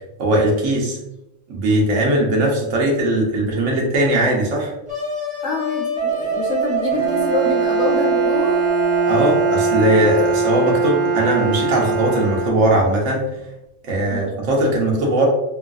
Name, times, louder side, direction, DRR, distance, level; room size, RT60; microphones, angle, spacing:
voice 1, 0.2-1.0 1.5-4.7 9.1-13.2 13.8-15.2, right 1 dB, 75° right, -2 dB, 1.1 m, -19 dB
Wind instrument woodwind instrument, 4.9-10.4, right 4 dB, 5° right, 0.9 m, -25 dB
voice 2, 5.4-8.6 14.1-14.3, left 1 dB, 70° left, -3 dB, 1.2 m, -25 dB
Bowed string instrument, 6.9-13.1, right 4 dB, 45° right, 1.3 m, -21 dB
3.1 x 2.3 x 2.4 m, 0.91 s
omnidirectional pair, 1.3 m